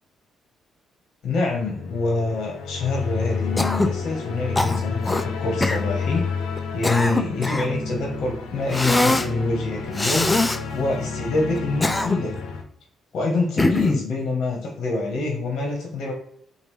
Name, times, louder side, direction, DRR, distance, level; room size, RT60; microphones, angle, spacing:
voice 1, 1.2-6.3 6.7-10.3 10.7-12.4 13.1-16.1, left 3 dB, 60° left, 0 dB, 1.0 m, -26 dB
sound 1, 1.6-12.6, left 5 dB, 85° left, 0.6 m, -30 dB
Cough, 3.6-4.0 4.6-5.3 5.6-5.8 6.6-7.7 8.7-9.3 10.0-10.6 11.6-12.4 13.6-14.1, left 2 dB, 15° left, 0.3 m, -22 dB
5.2 x 2.4 x 3.1 m, 0.68 s
cardioid pair, 90°, 0 cm